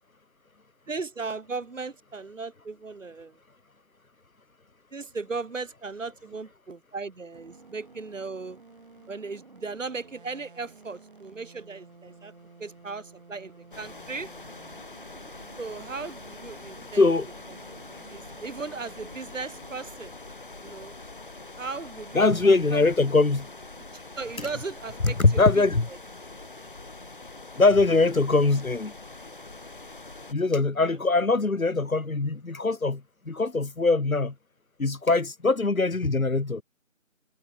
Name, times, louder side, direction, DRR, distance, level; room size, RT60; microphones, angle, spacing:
voice 1, 0.9-3.4 4.9-8.6 9.1-12.3 12.6-14.3 15.6-17.1 18.1-20.1 20.6-20.9 21.6-22.8 23.9-25.6 30.8-31.0, right 4 dB, 65° right, 1.5 m, -37 dB
sound 1, 7.3-19.9, right 4 dB, 40° right, 3.2 m, -52 dB
sound 2, 13.7-30.3, left 2 dB, 40° left, 0.9 m, -44 dB
voice 2, 16.9-17.3 22.1-23.5 25.0-25.9 27.6-28.9 30.3-34.3 34.8-36.6, left 3 dB, 90° left, 1.6 m, -22 dB
figure-of-eight pair, 165°, 41 cm